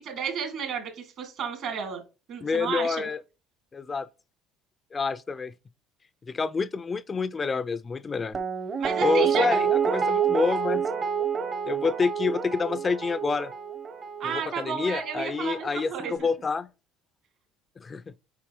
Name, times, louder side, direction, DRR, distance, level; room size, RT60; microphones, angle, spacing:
voice 1, 0.0-2.0 2.3-3.1 8.8-9.5 14.2-16.1, right 7 dB, 60° right, 2.3 m, -32 dB
voice 2, 2.4-3.2 3.7-4.1 4.9-5.5 6.3-8.4 9.0-10.8 11.2-11.3 11.7-13.5 14.2-16.7 17.8-18.0, left 4 dB, 30° left, 0.3 m, -28 dB
Guitar, 8.3-15.4 15.7-15.8, right 7 dB, 40° right, 0.8 m, -28 dB
6.9 x 4.6 x 3.0 m
hypercardioid pair, 75°, 0 cm